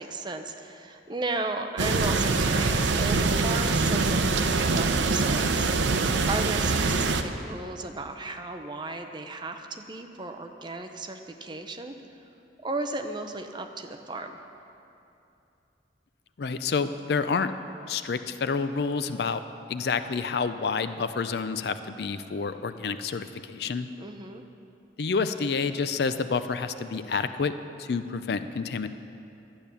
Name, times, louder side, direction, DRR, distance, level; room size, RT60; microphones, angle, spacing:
voice 1, 0.0-12.0 12.6-14.4 24.0-24.4, right 2 dB, 25° right, 5 dB, 0.6 m, -35 dB
sound 1, 1.8-7.2, right 3 dB, 80° right, 0.6 m, -24 dB
voice 2, 16.4-17.5 17.9-19.4 19.7-23.9 25.0-27.5 27.8-28.9, left 5 dB, 60° left, 11 dB, 0.4 m, -28 dB
12.0 x 8.9 x 6.9 m, 2.8 s
head